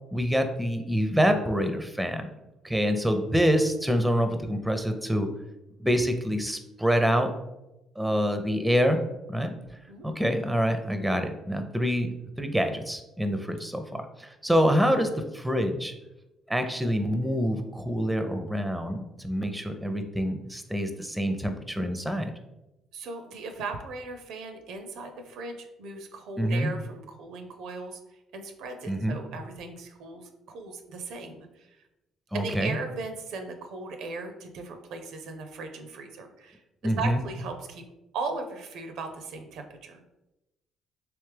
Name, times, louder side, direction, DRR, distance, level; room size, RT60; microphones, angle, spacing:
voice 1, 0.1-2.3 2.6-5.3 5.8-7.3 8.0-9.0 9.3-9.5 10.0-12.1 12.4-15.9 16.5-22.3 26.4-26.7 28.9-29.2 32.3-32.8 36.8-37.2, equal, 5° right, 7 dB, 0.5 m, -26 dB
voice 2, 22.9-28.0 28.3-31.7 32.3-37.8 38.1-40.0, right 3 dB, 75° right, 6 dB, 0.5 m, -38 dB
3.3 x 3.0 x 3.3 m, 0.95 s
supercardioid pair, 65°, 0 cm